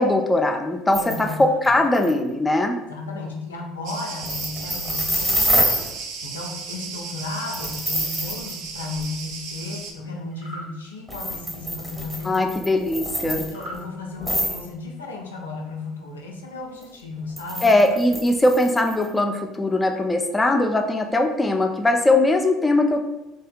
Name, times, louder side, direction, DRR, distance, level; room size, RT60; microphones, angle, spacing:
voice 1, 0.0-1.3 1.6-2.8 12.2-13.4 17.6-23.0, left 2 dB, 15° left, 4 dB, 0.3 m, -20 dB
sound 1, 0.9-1.3 1.6-1.7 1.9-2.1 4.2-5.9 7.5-8.5 9.0-9.1 11.1-13.8 14.2-14.6 17.4-19.1, equal, 5° right, 0.8 m, -26 dB
voice 2, 1.0-1.6 2.9-5.7 6.0-12.4 13.2-17.7, left 3 dB, 90° left, 0 dB, 0.4 m, -34 dB
Cricket, 3.9-9.9, right 5 dB, 65° right, 0.3 m, -35 dB
sound 2, 10.3-10.7 13.5-13.8, equal, 80° right, 0.7 m, -37 dB
2.7 x 2.2 x 2.5 m, 0.95 s
hypercardioid pair, 70°, 0 cm